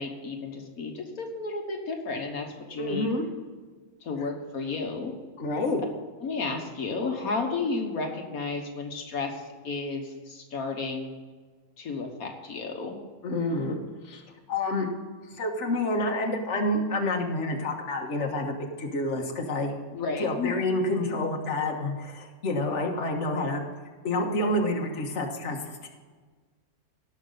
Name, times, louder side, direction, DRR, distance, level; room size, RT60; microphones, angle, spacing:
voice 1, 0.0-3.1 4.0-5.1 6.2-11.1 11.8-13.0 19.9-20.6, left 3 dB, 75° left, 3 dB, 1.8 m, -32 dB
voice 2, 2.8-3.2 5.4-5.8 13.2-13.8 14.0-14.2 14.5-14.9 15.3-19.7 20.2-23.6 24.0-25.6 25.8-25.9, left 2 dB, 55° left, 1 dB, 1.7 m, -28 dB
18.0 x 6.4 x 4.0 m, 1.4 s
omnidirectional pair, 1.5 m